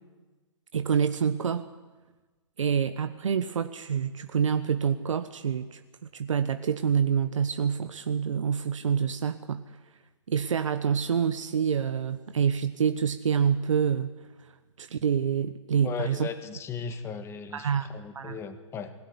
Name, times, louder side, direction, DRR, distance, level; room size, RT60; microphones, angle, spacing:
voice 1, 0.7-1.7 2.6-5.8 6.1-9.6 10.3-14.2 14.8-16.3 17.5-17.9 18.1-18.4, right 7 dB, 90° right, 9 dB, 1.1 m, -27 dB
voice 2, 15.8-18.9, left 6 dB, 15° left, 9 dB, 1.8 m, -37 dB
21.0 x 17.0 x 9.8 m, 1.3 s
hypercardioid pair, 145°, 16 cm